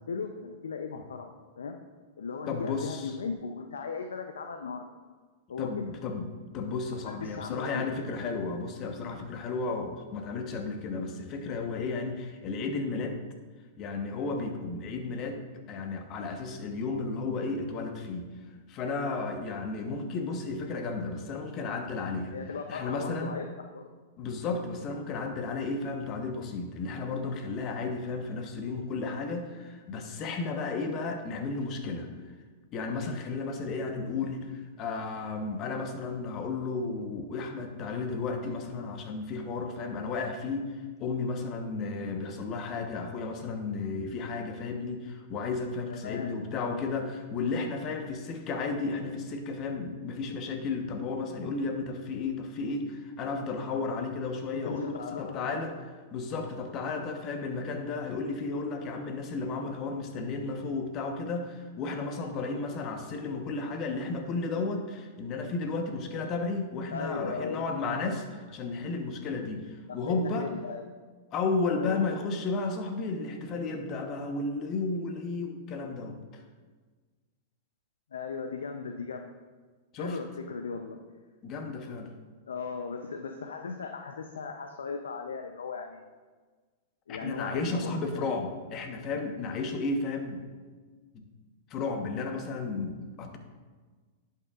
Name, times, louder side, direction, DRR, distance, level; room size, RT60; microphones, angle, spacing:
voice 1, 0.1-1.8 2.2-4.8 5.5-5.9 7.1-8.0 22.3-23.5 23.7-23.9 45.9-46.3 54.5-55.6 66.9-67.7 69.9-70.9 71.8-72.0 78.1-79.3 80.0-81.0 82.5-86.2 87.1-88.3, left 5 dB, 85° left, 5 dB, 0.5 m, -37 dB
voice 2, 2.5-3.2 5.6-6.3 6.5-13.2 13.8-15.4 15.7-18.3 18.7-22.3 22.7-23.4 24.2-32.1 32.7-40.7 41.0-55.8 56.1-70.5 71.3-76.4 79.9-80.2 81.4-82.1 87.1-90.4 91.1-91.2 91.7-93.4, left 3 dB, 40° left, 5 dB, 1.0 m, -33 dB
10.5 x 5.6 x 2.4 m, 1.4 s
hypercardioid pair, 115°, 0 cm